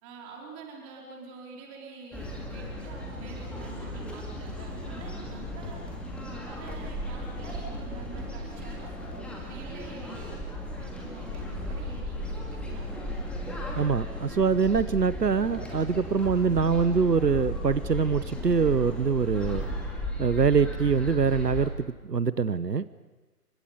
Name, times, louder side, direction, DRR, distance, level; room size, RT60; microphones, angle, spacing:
voice 1, 0.0-6.0 6.2-9.0 9.4-10.4 10.8-12.9, right 3 dB, 20° right, -1 dB, 4.3 m, -46 dB
sound 1, 2.1-21.7, equal, ahead, 2.3 m, -36 dB
voice 2, 13.7-19.6 20.2-22.9, right 5 dB, 85° right, 15 dB, 0.9 m, -24 dB
29.5 x 24.0 x 5.3 m, 1.2 s
figure-of-eight pair, 140°, 47 cm